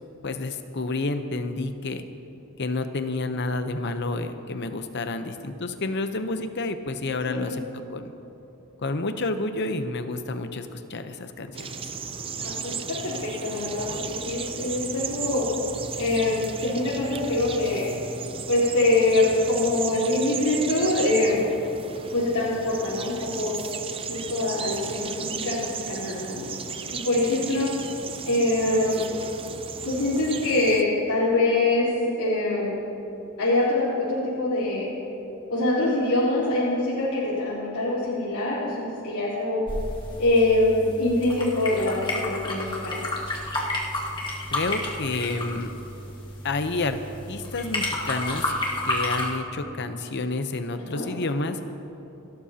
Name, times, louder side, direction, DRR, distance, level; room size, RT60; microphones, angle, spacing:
voice 1, 0.2-2.0 2.6-7.6 7.9-8.1 8.8-11.7 44.5-45.7 46.4-47.0 47.3-48.5 48.8-51.6, left 3 dB, 50° left, 8 dB, 0.8 m, -29 dB
sound 1, 11.5-30.8, right 6 dB, 25° right, 0.5 m, -35 dB
voice 2, 12.4-12.7 13.0-15.5 15.9-17.9 18.5-21.5 22.1-23.5 24.1-26.4 26.9-27.7 28.3-29.1 29.8-31.9 32.2-32.8 33.4-34.9 35.5-39.6 40.2-43.0 50.9-51.1, left 2 dB, 90° left, -11 dB, 3.8 m, -24 dB
sound 2, 39.7-49.3, left 1 dB, 20° left, 1.8 m, -31 dB
29.5 x 12.5 x 2.9 m, 2.9 s
head